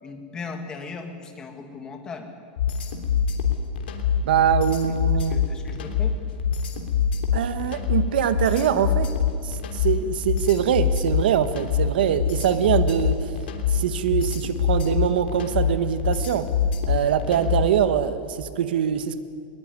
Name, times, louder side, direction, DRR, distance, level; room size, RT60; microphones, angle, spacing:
voice 1, 0.0-2.3 4.9-6.1, left 4 dB, 15° left, 4 dB, 1.9 m, -38 dB
sound 1, 2.6-17.8, left 7 dB, 75° left, 3.3 m, -24 dB
voice 2, 4.2-5.4 7.3-9.1 9.4-13.3 13.7-16.5 16.9-19.2, right 9 dB, 65° right, 11 dB, 1.4 m, -23 dB
21.5 x 19.5 x 9.7 m, 2.4 s
supercardioid pair, 175°, 5 cm